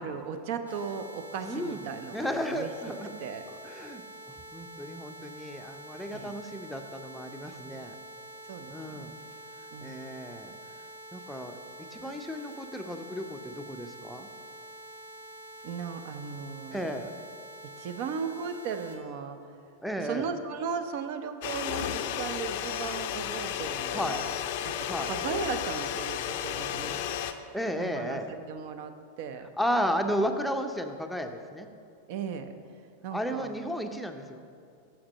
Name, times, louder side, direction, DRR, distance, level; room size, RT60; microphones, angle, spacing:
voice 1, 0.0-2.7 3.2-3.4 6.1-6.4 8.5-9.1 9.7-10.1 15.6-16.9 17.8-19.4 20.0-24.3 24.6-27.0 27.8-29.5 32.1-32.5 33.0-33.5, right 6 dB, 50° right, 9 dB, 0.6 m, -37 dB
sound 1, 0.7-19.0, right 1 dB, 75° right, 1.0 m, -47 dB
voice 2, 1.4-1.8 2.1-3.1 3.5-7.9 8.7-9.1 9.8-10.5 11.1-11.6 11.9-14.3 16.7-17.1 19.8-20.3 23.9-24.2 24.8-25.1 27.5-28.3 29.6-31.7 33.1-34.4, equal, ahead, 5 dB, 0.6 m, -33 dB
sound 2, 21.4-27.3, left 10 dB, 50° left, 0.5 m, -33 dB
8.7 x 7.0 x 5.3 m, 2.4 s
figure-of-eight pair, 90°, 0 cm